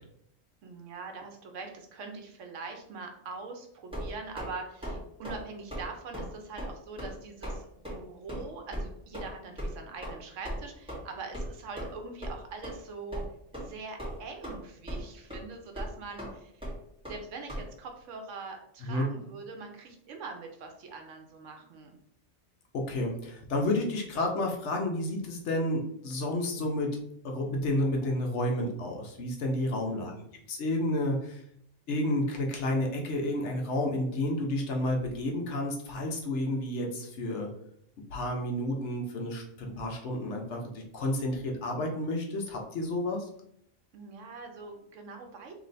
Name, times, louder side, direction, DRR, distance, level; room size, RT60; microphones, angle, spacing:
voice 1, 0.6-7.6 7.9-13.2 13.5-16.7 17.1-22.0 29.8-30.2 43.9-45.5, right 4 dB, 80° right, 4 dB, 1.0 m, -43 dB
sound 1, 3.9-4.5 4.8-5.0 5.2-5.4 5.7-5.9 6.1-6.3 6.6-6.7 7.0-7.1 7.4-7.6 7.8-8.0 8.3-8.4 8.7-8.8 9.1-9.3 9.6-9.7 10.0-10.1 10.4-10.6 10.9-11.0 11.3-11.5 11.8-11.9 12.2-12.3 12.6-12.7 13.1-13.2 13.5-13.7 14.0-14.6 14.9-15.0 15.3-15.4 15.8-15.9 16.2-16.3 16.6-16.7 17.0-17.2 17.5-17.6, equal, 5° right, 1.6 m, -36 dB
voice 2, 22.7-26.9 27.2-30.1 30.5-31.4 31.9-37.5 38.1-43.2, left 1 dB, 70° left, 1 dB, 1.1 m, -30 dB
3.2 x 3.0 x 4.0 m, 0.70 s
omnidirectional pair, 1.3 m